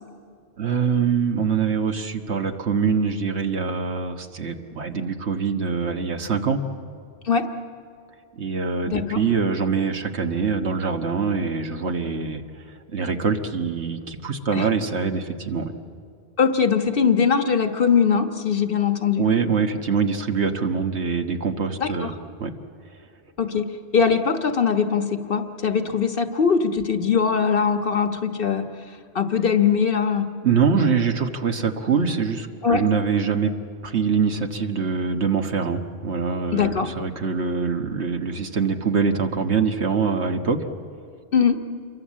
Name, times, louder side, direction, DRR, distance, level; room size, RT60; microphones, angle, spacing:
voice 1, 0.6-6.6 8.4-12.4 12.9-15.7 19.2-22.1 22.4-22.5 30.4-33.5 33.8-40.6, right 5 dB, 85° right, 5 dB, 1.7 m, -24 dB
voice 2, 8.8-9.2 14.5-14.7 16.4-19.3 21.8-22.1 23.4-28.7 29.1-30.3 32.6-32.8 36.5-36.9 41.3-41.6, left 6 dB, 55° left, 7 dB, 1.5 m, -21 dB
27.5 x 23.5 x 7.5 m, 2.5 s
omnidirectional pair, 1.1 m